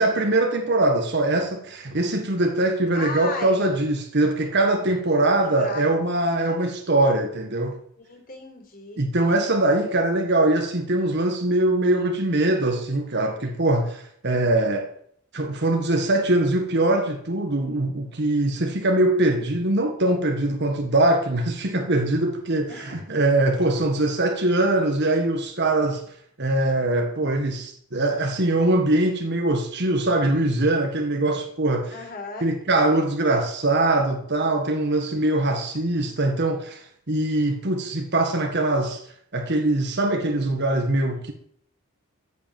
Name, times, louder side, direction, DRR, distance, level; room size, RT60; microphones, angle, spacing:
voice 1, 0.0-7.8 9.0-14.9 15.3-26.0 26.4-31.9 32.4-39.0 39.3-41.3, right 2 dB, 55° right, 4 dB, 1.7 m, -22 dB
voice 2, 2.9-3.7 5.4-5.9 8.0-9.0 22.7-23.0 31.9-32.5, left 3 dB, 45° left, 1 dB, 4.9 m, -35 dB
14.0 x 8.4 x 7.8 m, 0.65 s
head